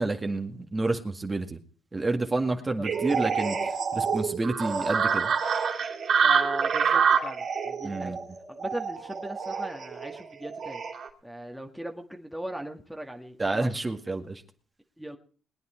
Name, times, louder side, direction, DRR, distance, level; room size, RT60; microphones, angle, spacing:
voice 1, 0.0-1.6 1.9-3.6 3.9-5.3 7.8-8.2 13.4-14.4, right 2 dB, 20° right, 5 dB, 2.0 m, -29 dB
sound 1, 2.8-11.1, right 6 dB, 55° right, 3.0 m, -27 dB
voice 2, 6.2-8.1 8.5-10.8 11.2-13.8 15.0-15.2, right 1 dB, 5° right, 3 dB, 1.8 m, -38 dB
21.5 x 9.4 x 4.5 m, 0.42 s
supercardioid pair, 70°, 0 cm